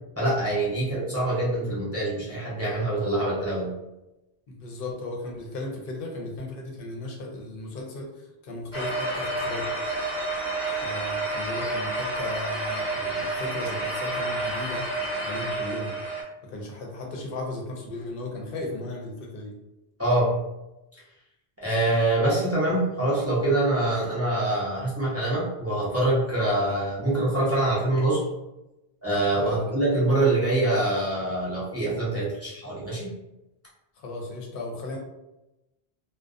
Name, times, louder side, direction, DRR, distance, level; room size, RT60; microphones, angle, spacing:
voice 1, 0.2-3.7 20.0-20.3 21.6-28.3 29.0-33.1, right 2 dB, 20° right, -8 dB, 0.4 m, -25 dB
voice 2, 4.5-8.1 8.4-9.7 10.8-14.9 15.2-15.9 16.4-19.5 29.4-29.6 34.0-35.0, left 2 dB, 65° left, 0 dB, 0.7 m, -36 dB
sound 1, 8.7-16.2, right 2 dB, 5° left, 0.8 m, -29 dB
2.4 x 2.1 x 2.3 m, 0.95 s
omnidirectional pair, 1.1 m